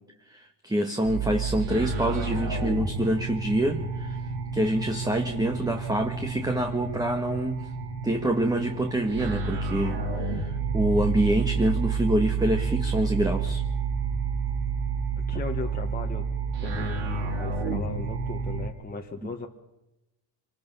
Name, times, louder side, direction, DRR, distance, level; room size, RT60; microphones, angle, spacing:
voice 1, 0.3-4.2 4.5-7.7 8.0-13.6, right 1 dB, 10° right, 5 dB, 1.3 m, -26 dB
sound 1, 1.0-18.7, right 5 dB, 85° right, 3.8 m, -29 dB
voice 2, 15.3-16.3 16.6-19.5, left 4 dB, 20° left, 1 dB, 1.4 m, -37 dB
26.0 x 19.5 x 5.6 m, 0.94 s
cardioid pair, 105°, 47 cm